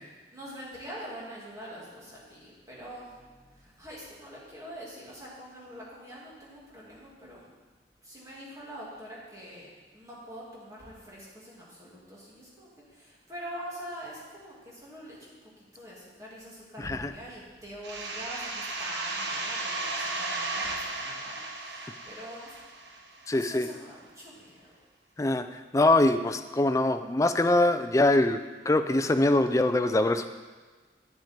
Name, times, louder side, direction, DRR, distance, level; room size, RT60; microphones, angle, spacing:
voice 1, 0.3-7.5 8.0-9.7 9.9-15.4 15.7-22.6 23.3-24.7, equal, 20° right, -6 dB, 2.6 m, -44 dB
voice 2, 16.8-17.1 23.3-23.7 25.2-30.3, left 2 dB, 20° left, 9 dB, 0.4 m, -24 dB
sound 1, 17.8-23.3, right 2 dB, 80° right, 1.1 m, -35 dB
9.4 x 7.6 x 4.5 m, 1.4 s
head